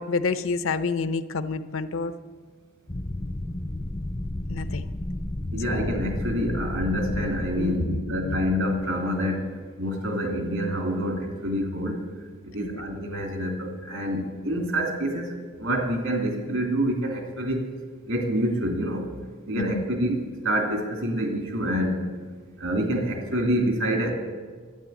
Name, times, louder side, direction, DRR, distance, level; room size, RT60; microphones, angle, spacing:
voice 1, 0.0-2.1 4.5-4.8 5.7-5.9 7.6-8.5 12.6-12.9 19.5-19.8, left 4 dB, 65° left, 12 dB, 0.7 m, -29 dB
sound 1, 2.9-9.0, left 1 dB, 15° left, 0.5 m, -32 dB
voice 2, 5.5-9.5 9.8-12.0 12.4-15.3 15.6-17.7 18.1-19.1 19.5-20.2 20.4-22.0 22.6-24.1, equal, 75° right, 2 dB, 2.8 m, -27 dB
12.0 x 9.9 x 8.1 m, 1.5 s
head